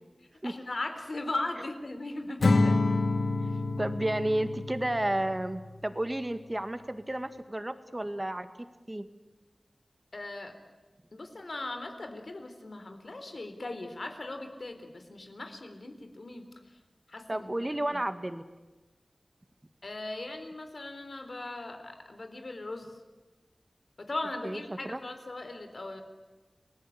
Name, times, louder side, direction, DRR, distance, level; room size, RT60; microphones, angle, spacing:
voice 1, 0.4-2.8 3.5-3.6 10.1-10.5 11.1-16.5 17.1-17.5 19.8-22.9 24.0-26.0, left 2 dB, 60° left, 7 dB, 3.6 m, -38 dB
Acoustic guitar / Strum, 2.4-5.7, left 3 dB, 80° left, 1.6 m, -28 dB
voice 2, 3.8-8.5 8.9-9.1 17.3-18.4 24.4-25.0, right 1 dB, 20° right, 10 dB, 1.8 m, -32 dB
30.0 x 19.5 x 8.7 m, 1.2 s
wide cardioid pair, 65°, 0 cm